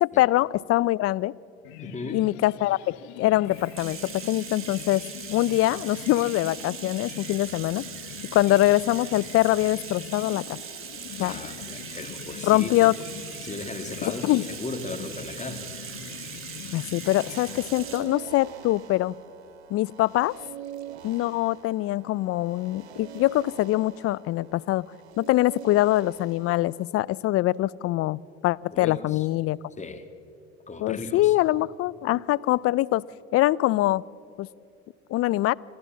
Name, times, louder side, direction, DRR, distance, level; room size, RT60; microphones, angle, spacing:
voice 1, 0.0-1.3 2.1-5.0 5.3-7.8 8.3-10.6 11.2-11.4 12.4-12.9 14.2-14.4 16.7-19.1 19.7-20.3 21.0-24.8 25.2-29.6 30.8-33.0 33.3-34.0 34.4-34.5 35.1-35.5, left 16 dB, 45° left, 21 dB, 0.5 m, -23 dB
sound 1, 1.6-18.2, left 11 dB, 70° left, 1.0 m, -43 dB
voice 2, 1.8-2.2 11.2-12.9 13.4-15.7 28.7-29.3 29.8-30.0 30.7-31.4, left 3 dB, 20° left, 7 dB, 2.2 m, -37 dB
Bathtub (filling or washing), 3.4-18.1, right 8 dB, 40° right, 2.5 m, -40 dB
sound 2, 17.0-26.9, right 9 dB, 85° right, 1.5 m, -45 dB
27.5 x 13.0 x 7.4 m, 2.6 s
hypercardioid pair, 70°, 32 cm